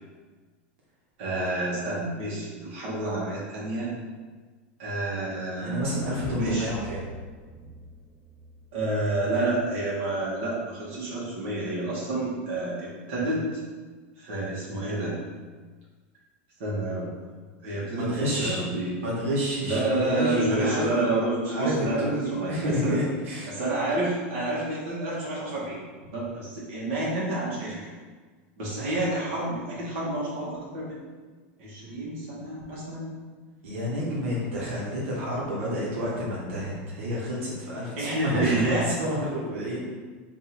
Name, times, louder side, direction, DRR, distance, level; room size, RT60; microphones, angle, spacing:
voice 1, 1.2-3.9 4.8-6.0 6.4-6.7 8.7-13.6 14.2-15.2 16.6-17.1 17.6-18.9 19.6-23.0 23.4-25.8 26.1-27.9 28.6-31.0 31.6-33.1 38.0-38.9, right 2 dB, 70° right, -6 dB, 1.3 m, -29 dB
voice 2, 5.5-7.0 17.9-18.6 19.0-20.9 21.5-23.5 33.6-39.8, equal, 90° right, -6 dB, 1.2 m, -29 dB
sound 1, 5.8-9.9, right 1 dB, 25° right, 0.6 m, -44 dB
3.7 x 2.6 x 4.4 m, 1.4 s
supercardioid pair, 140°, 7 cm